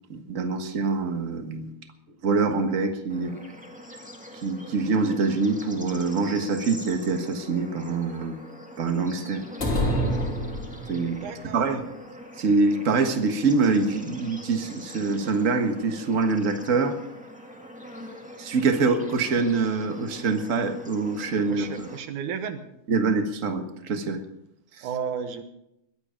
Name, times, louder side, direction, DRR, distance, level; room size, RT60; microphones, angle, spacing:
voice 1, 0.1-1.7 2.2-3.3 4.4-8.4 8.8-9.4 10.9-11.2 11.5-11.9 12.4-17.0 18.4-21.9 22.9-24.2 24.8-24.9, right 4 dB, 45° right, 6 dB, 1.1 m, -25 dB
Bird / Insect / Frog, 3.1-22.0, equal, 5° right, 1.0 m, -44 dB
sound 1, 9.6-11.2, equal, 25° left, 3.3 m, -26 dB
voice 2, 11.2-11.7 21.5-22.6 24.8-25.4, right 7 dB, 75° right, 9 dB, 2.5 m, -33 dB
21.5 x 10.0 x 5.2 m, 0.81 s
omnidirectional pair, 3.5 m